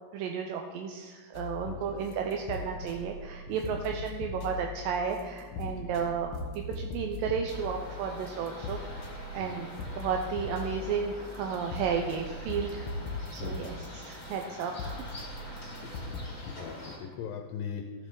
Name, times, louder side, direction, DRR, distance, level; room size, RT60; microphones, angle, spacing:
voice 1, 0.1-9.7 10.0-12.9 13.3-15.0 15.5-15.7, right 6 dB, 80° right, 3 dB, 2.3 m, -33 dB
sound 1, 1.3-16.2, left 3 dB, 70° left, 2.9 m, -40 dB
voice 2, 1.7-2.0 3.5-3.8 5.5-5.9 9.4-9.7 13.4-13.7 15.8-15.9 16.4-18.1, left 7 dB, 85° left, 4 dB, 2.6 m, -41 dB
sound 2, 7.5-17.0, left 1 dB, 35° left, 3.3 m, -45 dB
14.5 x 7.3 x 3.8 m, 1.5 s
omnidirectional pair, 4.1 m